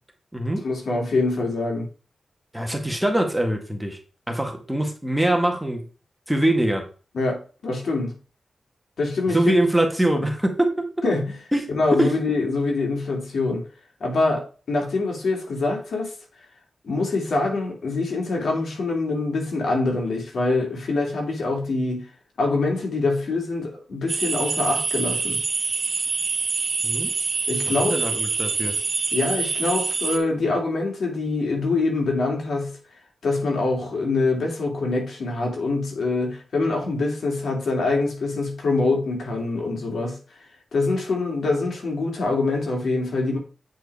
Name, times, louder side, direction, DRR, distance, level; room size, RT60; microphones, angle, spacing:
voice 1, 0.6-1.9 7.1-8.1 9.0-9.4 10.1-10.3 11.0-11.4 11.7-13.7 14.0-16.1 16.8-22.1 22.4-25.4 27.5-28.2 29.1-32.7 33.2-40.2 40.7-43.4, left 3 dB, 75° left, 2.7 m, -24 dB
voice 2, 2.5-4.0 4.3-5.8 6.3-6.8 9.3-10.9 11.5-11.7 12.0-12.1 26.8-27.1 27.7-28.7, right 1 dB, 5° right, 1.7 m, -23 dB
sound 1, 24.1-30.2, right 4 dB, 50° right, 1.1 m, -26 dB
8.4 x 4.8 x 4.7 m
wide cardioid pair, 105°, 0 cm